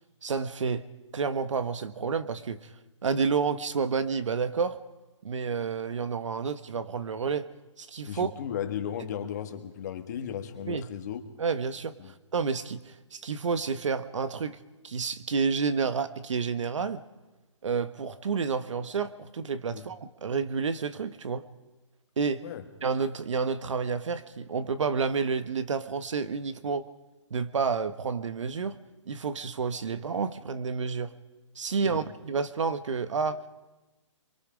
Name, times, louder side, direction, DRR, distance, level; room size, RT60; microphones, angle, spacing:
voice 1, 0.2-0.9 1.1-2.7 3.0-4.8 5.2-7.5 7.8-8.3 10.7-10.9 11.4-14.6 14.8-17.0 17.6-21.5 22.2-22.4 22.8-26.9 27.3-28.8 29.0-31.1 31.5-33.5, right 5 dB, 70° right, 12 dB, 1.2 m, -30 dB
voice 2, 8.1-11.2 12.0-12.1 19.7-19.8 22.4-22.6 31.8-32.0, left 9 dB, 35° left, 6 dB, 1.6 m, -35 dB
28.5 x 23.0 x 5.1 m, 1.1 s
hypercardioid pair, 165°, 16 cm